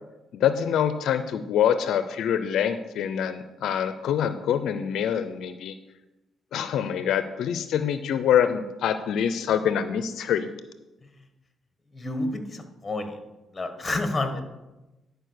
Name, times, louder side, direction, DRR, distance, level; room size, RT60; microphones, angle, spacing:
voice 1, 0.3-5.7 6.5-10.5, left 9 dB, 75° left, 11 dB, 0.5 m, -25 dB
voice 2, 11.9-13.2 13.5-14.4, left 2 dB, 20° left, 7 dB, 1.5 m, -29 dB
11.0 x 4.8 x 6.4 m, 1.0 s
cardioid pair, 90°, 0 cm